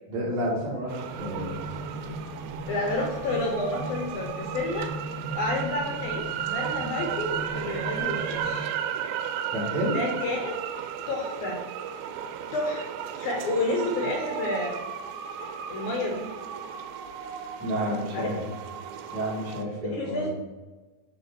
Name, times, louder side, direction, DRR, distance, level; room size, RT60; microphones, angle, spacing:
voice 1, 0.1-1.7 9.5-9.9 17.6-18.4 19.1-20.3, equal, 50° right, -6 dB, 3.1 m, -30 dB
sound 1, 0.9-19.6, right 9 dB, 90° right, 2.4 m, -35 dB
sound 2, 1.1-8.6, right 1 dB, 70° right, 2.6 m, -38 dB
voice 2, 2.7-4.9 5.4-8.7 9.9-10.6 11.1-11.6 12.5-12.9 13.2-14.8 15.7-16.3 18.1-18.3 19.8-20.3, left 2 dB, 75° left, 0 dB, 1.9 m, -30 dB
9.2 x 3.3 x 4.5 m, 1.2 s
omnidirectional pair, 4.2 m